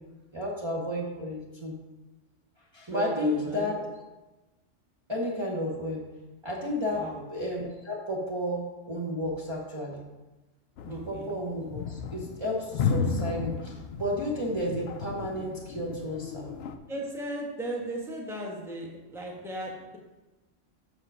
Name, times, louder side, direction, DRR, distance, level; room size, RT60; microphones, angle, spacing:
voice 1, 0.3-1.7 2.7-3.8 5.1-6.0 6.4-7.0 7.3-10.0 10.8-16.5, left 1 dB, 25° right, -5 dB, 1.0 m, -32 dB
voice 2, 2.9-3.7 6.9-7.2 10.9-11.3 16.9-20.0, right 1 dB, ahead, -2 dB, 1.1 m, -36 dB
sound 1, 10.8-16.8, left 5 dB, 65° left, 0.7 m, -34 dB
6.3 x 4.9 x 5.5 m, 1.1 s
omnidirectional pair, 1.3 m